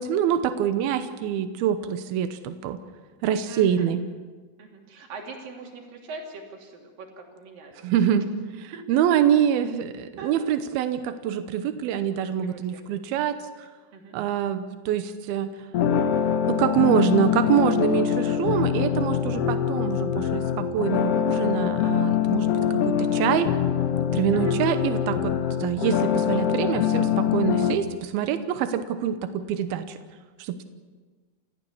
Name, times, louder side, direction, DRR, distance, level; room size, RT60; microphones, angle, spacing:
voice 1, 0.0-2.8 3.2-4.0 7.8-8.3 8.5-13.7 14.1-15.5 16.1-16.2 16.5-23.5 24.1-25.3 25.6-30.0 30.4-30.6, right 9 dB, 85° right, 10 dB, 2.8 m, -25 dB
voice 2, 3.5-3.9 4.6-7.7 8.1-8.2 8.7-8.8 10.2-10.3 12.4-12.8 13.9-14.2 24.3-24.5, right 4 dB, 65° right, 1 dB, 4.5 m, -41 dB
sound 1, 15.7-27.7, left 9 dB, 80° left, 1.3 m, -24 dB
29.5 x 15.0 x 7.1 m, 1.4 s
omnidirectional pair, 4.3 m